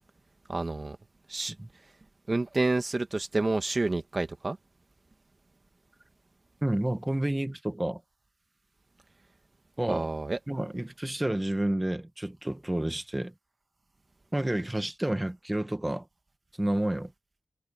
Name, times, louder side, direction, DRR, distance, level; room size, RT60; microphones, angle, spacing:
voice 1, 0.5-1.0 1.3-1.5 2.3-4.6 9.9-10.4, right 2 dB, 30° right, 1.3 m, -29 dB
voice 2, 6.6-8.0 9.8-10.1 10.5-13.3 14.3-16.1 16.6-17.1, right 1 dB, 10° right, 1.3 m, -30 dB
wide cardioid pair, 145°, 0 cm